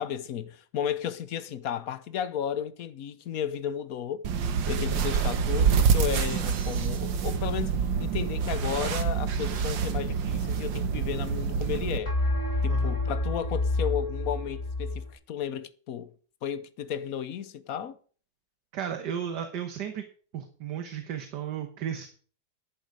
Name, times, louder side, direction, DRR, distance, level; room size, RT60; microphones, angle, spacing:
voice 1, 0.0-4.2 4.7-12.1 12.6-16.1 16.4-18.0, left 9 dB, 60° left, 1.1 m, -33 dB
sound 1, 4.2-12.0, right 6 dB, 90° right, 1.8 m, -27 dB
sound 2, 5.2-5.6 12.1-15.1, left 2 dB, 45° left, 4.2 m, -29 dB
sound 3, 6.3-7.3, right 5 dB, 40° right, 4.1 m, -49 dB
voice 2, 18.7-20.0 20.3-22.1, right 8 dB, 65° right, 1.7 m, -34 dB
11.0 x 10.5 x 4.8 m
omnidirectional pair, 2.0 m